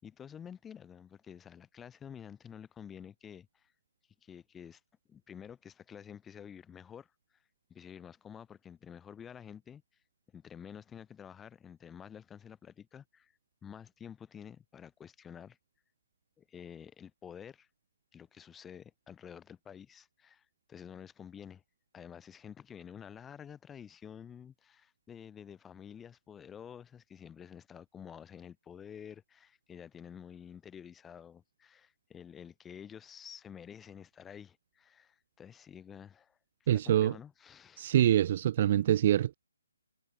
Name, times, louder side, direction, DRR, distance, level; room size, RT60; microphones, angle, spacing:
voice 1, 0.0-3.7 4.2-4.8 5.1-7.1 7.7-9.8 10.3-13.3 13.6-15.6 16.4-17.7 18.1-21.6 21.9-36.4 36.7-38.0, left 8 dB, 10° left, 5.7 m, -50 dB
voice 2, 36.7-37.1 37.8-39.3, right 11 dB, 40° right, 0.7 m, -25 dB
hypercardioid pair, 155°, 0 cm